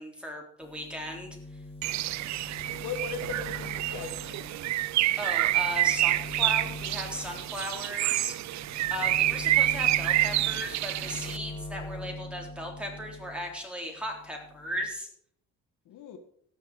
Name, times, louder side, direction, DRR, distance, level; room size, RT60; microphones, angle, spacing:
voice 1, 0.0-1.6 5.2-8.4 8.9-15.1, equal, 5° right, 0 dB, 3.7 m, -37 dB
sound 1, 0.6-13.6 13.9-14.9, left 2 dB, 20° left, 2.1 m, -43 dB
Bird, 1.8-11.4, right 15 dB, 65° right, 0.4 m, -28 dB
voice 2, 2.8-4.5 15.8-16.2, left 5 dB, 85° left, 7 dB, 1.5 m, -38 dB
17.5 x 6.4 x 4.7 m, 0.66 s
cardioid pair, 90°, 30 cm